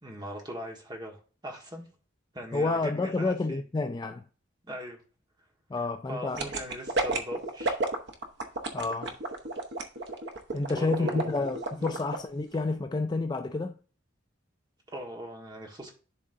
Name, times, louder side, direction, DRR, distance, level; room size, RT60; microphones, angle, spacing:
voice 1, 0.0-1.9 2.3-3.6 4.6-5.0 6.1-7.8 10.5-11.4 11.8-11.9 14.9-15.9, equal, 20° right, 1.4 m, -40 dB
voice 2, 2.5-4.2 5.7-6.5 8.7-9.1 10.5-13.7, left 3 dB, 20° left, 0.3 m, -29 dB
sound 1, 6.3-12.2 12.5-12.6, right 2 dB, 60° right, 0.9 m, -31 dB
11.0 x 3.8 x 2.6 m
head